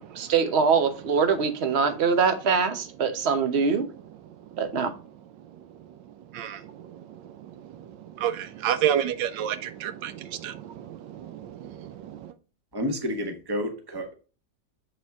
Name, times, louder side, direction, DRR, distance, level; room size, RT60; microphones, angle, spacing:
voice 1, 0.1-3.9 4.6-4.9, right 5 dB, 45° right, 1.0 m, -23 dB
voice 2, 4.2-4.6 5.4-12.3, right 10 dB, 80° right, 1.3 m, -32 dB
voice 3, 12.7-14.1, equal, 15° right, 1.0 m, -30 dB
7.8 x 4.3 x 3.5 m
omnidirectional pair, 2.0 m